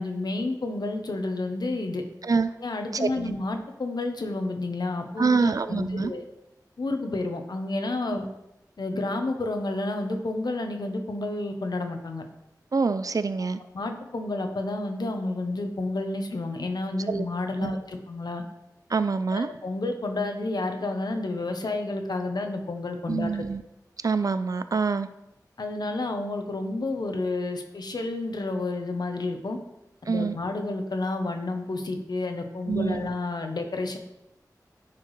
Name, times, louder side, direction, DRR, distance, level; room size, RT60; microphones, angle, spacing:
voice 1, 0.0-2.0 2.6-6.2 6.8-8.3 8.8-12.2 13.7-18.4 19.3-23.3 25.6-29.6 30.1-34.0, left 2 dB, 80° left, 5 dB, 0.9 m, -30 dB
voice 2, 2.9-3.3 5.2-6.1 12.7-13.6 17.1-17.3 17.6-17.8 18.9-19.5 23.1-23.6 24.0-25.1 30.1-30.4 32.7-33.1, right 4 dB, 55° right, 12 dB, 0.4 m, -25 dB
10.0 x 4.5 x 3.2 m, 0.89 s
wide cardioid pair, 70°, 7 cm